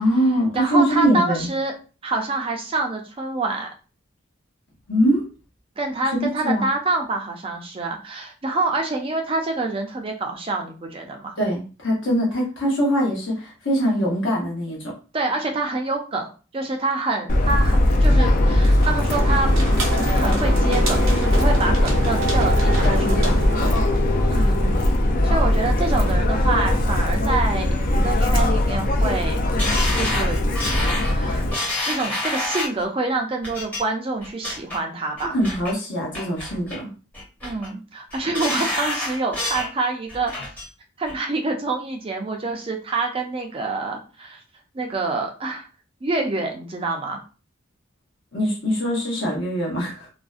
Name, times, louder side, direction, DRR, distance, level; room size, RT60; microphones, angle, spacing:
voice 1, 0.0-1.5 4.9-5.3 6.4-6.7 11.4-14.9 22.8-23.8 35.3-36.8 48.3-50.1, equal, 65° left, -3 dB, 0.8 m, -23 dB
voice 2, 0.5-1.7 2.0-3.7 5.8-11.4 15.1-19.5 19.9-22.9 24.3-24.8 25.2-29.4 29.9-30.4 30.9-31.5 31.9-35.3 37.4-40.3 41.0-44.4 44.7-45.7 46.0-47.2, right 3 dB, 25° right, 2 dB, 0.4 m, -26 dB
Subway metro underground, 17.3-31.5, left 1 dB, 40° left, 0.3 m, -19 dB
sound 1, 18.6-24.1, right 3 dB, 80° right, 0.6 m, -29 dB
sound 2, 29.6-32.8 33.4-33.8 34.2-34.8 35.2-35.7 36.1-36.8 37.1-37.7 38.1-39.7 40.1-40.7 41.1-41.2, left 1 dB, 10° left, 0.7 m, -28 dB
2.5 x 2.1 x 2.3 m, 0.35 s
head